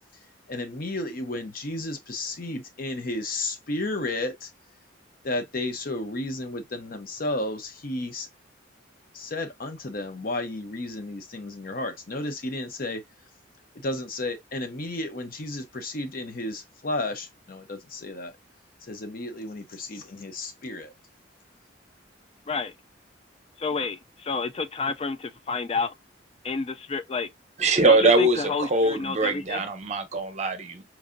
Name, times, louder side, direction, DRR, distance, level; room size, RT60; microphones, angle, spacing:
voice 1, 0.5-4.5 5.2-8.3 9.1-13.0 13.7-18.3 18.9-20.9, left 2 dB, 50° left, 0.8 m, -32 dB
voice 2, 23.6-25.9 26.4-27.3 27.9-29.6, left 4 dB, 30° left, 0.3 m, -30 dB
voice 3, 27.6-30.8, right 2 dB, 35° right, 0.7 m, -22 dB
4.6 x 2.7 x 2.5 m
head